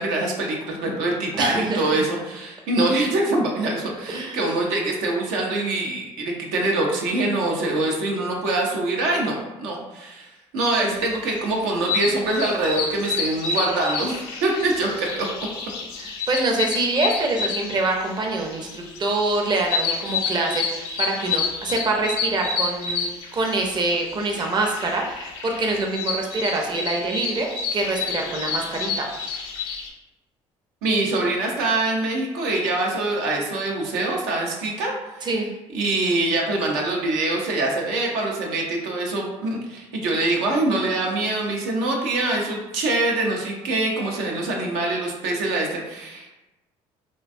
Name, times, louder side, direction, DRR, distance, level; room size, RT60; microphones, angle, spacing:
voice 1, 0.0-15.5 30.8-35.3 35.7-46.3, right 2 dB, 85° right, -1 dB, 0.5 m, -24 dB
voice 2, 1.3-2.0 4.1-4.4 16.0-29.5 35.2-35.5, right 2 dB, 35° right, 1 dB, 0.5 m, -25 dB
sound 1, 11.2-29.9, left 5 dB, 90° left, 0.4 m, -29 dB
2.5 x 2.2 x 2.5 m, 1.0 s
supercardioid pair, 70°, 14 cm